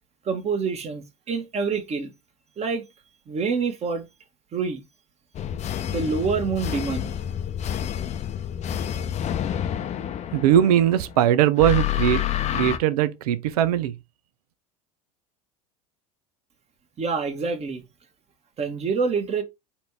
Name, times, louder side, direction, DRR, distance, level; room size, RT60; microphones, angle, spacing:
voice 1, 0.2-2.1 2.6-2.8 3.3-4.1 4.5-4.8 5.9-7.1 17.0-17.8 18.6-19.4, right 5 dB, 35° right, 1.3 m, -26 dB
sound 1, 5.3-11.1 11.6-12.8, left 10 dB, 35° left, 0.7 m, -28 dB
voice 2, 10.3-12.2 12.5-13.9, right 11 dB, 75° right, 0.6 m, -20 dB
4.3 x 2.7 x 4.6 m
hypercardioid pair, 85°, 20 cm